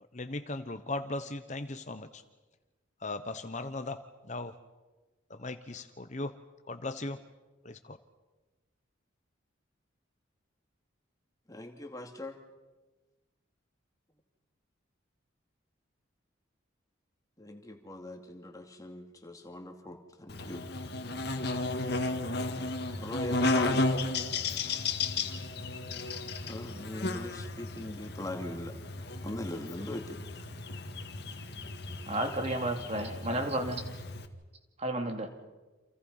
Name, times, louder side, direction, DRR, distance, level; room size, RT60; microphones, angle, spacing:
voice 1, 0.1-2.2 3.0-4.0 4.3-4.5 5.3-6.3 6.7-7.2 7.6-8.0, left 2 dB, 35° left, 9 dB, 1.0 m, -37 dB
voice 2, 11.5-12.4 17.4-20.6 23.0-23.8 26.4-28.7 29.2-30.2, left 1 dB, 15° left, 4 dB, 2.4 m, -41 dB
Buzz, 20.3-34.3, left 3 dB, 55° left, 1.9 m, -34 dB
voice 3, 32.1-33.8 34.8-35.3, right 1 dB, 30° right, 4 dB, 2.7 m, -32 dB
29.5 x 28.0 x 5.6 m, 1.2 s
head